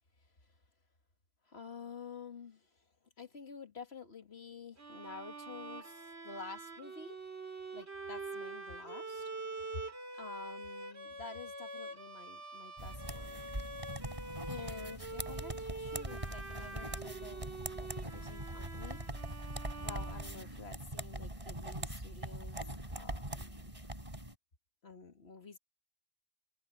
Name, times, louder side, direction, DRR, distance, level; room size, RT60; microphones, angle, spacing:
voice 1, 1.5-2.7 3.2-7.2 7.7-9.3 9.7-9.8 10.1-13.4 14.4-17.5 17.8-19.0 19.7-22.6 22.9-23.7 24.8-25.6, left 4 dB, 70° left, 2.3 m, -49 dB
Bowed string instrument, 4.8-20.9, right 3 dB, 80° right, 4.0 m, -45 dB
sound 1, 12.8-24.3, right 1 dB, 30° right, 4.7 m, -42 dB
omnidirectional pair, 1.1 m